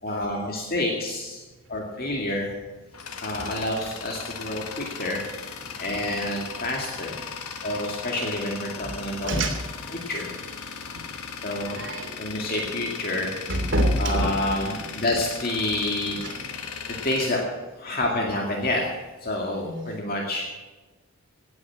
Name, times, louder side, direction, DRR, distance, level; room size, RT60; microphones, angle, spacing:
voice 1, 0.0-1.4 1.7-2.5 3.2-5.3 5.7-7.2 7.6-9.4 9.9-10.3 11.4-11.9 12.2-13.3 14.0-16.3 16.9-17.4 17.8-18.8 19.2-20.5, left 1 dB, 45° left, 0 dB, 2.2 m, -28 dB
Tools, 2.7-18.3, left 6 dB, 85° left, 1.7 m, -37 dB
voice 2, 9.2-9.6 10.9-11.0 11.7-12.1 13.5-14.3 16.2-16.3 19.5-19.9, equal, 55° right, 3 dB, 3.0 m, -26 dB
18.0 x 9.6 x 7.5 m, 1.2 s
head